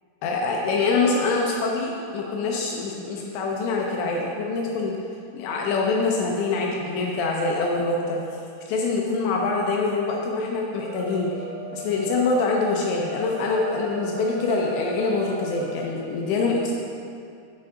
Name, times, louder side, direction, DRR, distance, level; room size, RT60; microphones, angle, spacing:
voice 1, 0.2-5.0 5.3-8.2 8.7-11.3 11.7-16.7, left 3 dB, 80° left, -1 dB, 2.7 m, -25 dB
sound 1, 10.6-15.9, right 2 dB, 90° right, 1.4 m, -37 dB
8.9 x 7.3 x 3.8 m, 2.4 s
omnidirectional pair, 5.6 m